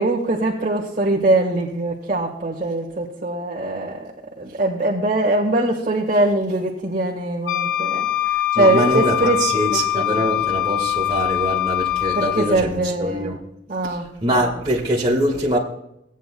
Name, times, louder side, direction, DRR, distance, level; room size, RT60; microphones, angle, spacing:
voice 1, 0.0-4.1 4.4-8.0 8.6-9.4 9.7-10.3 12.1-13.3 13.7-14.1, right 2 dB, 45° right, 1.5 m, -22 dB
Wind instrument woodwind instrument, 7.5-12.6, left 13 dB, 85° left, 1.0 m, -23 dB
voice 2, 8.5-13.4 13.8-15.6, right 1 dB, 30° right, 1.7 m, -23 dB
17.5 x 9.2 x 2.2 m
head